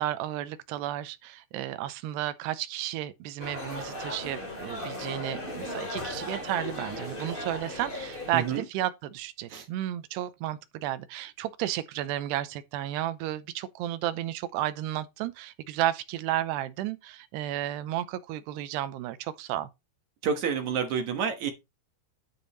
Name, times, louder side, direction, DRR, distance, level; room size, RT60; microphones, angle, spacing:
voice 1, 0.0-19.7, right 13 dB, 85° right, 2.8 m, -33 dB
sound 1, 3.4-8.6, left 1 dB, 20° left, 1.6 m, -37 dB
voice 2, 8.3-8.6 9.5-9.7 20.2-21.5, right 7 dB, 65° right, 2.0 m, -29 dB
11.0 x 5.2 x 4.1 m
omnidirectional pair, 5.0 m